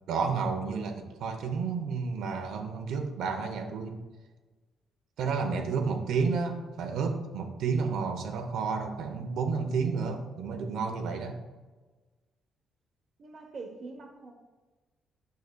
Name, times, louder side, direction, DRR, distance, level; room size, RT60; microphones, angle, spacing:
voice 1, 0.1-3.9 5.2-11.4, right 5 dB, 85° right, 5 dB, 0.7 m, -31 dB
voice 2, 13.2-14.3, right 3 dB, 35° right, 4 dB, 0.8 m, -43 dB
9.4 x 6.3 x 2.2 m, 1.3 s
cardioid pair, 165°, 0 cm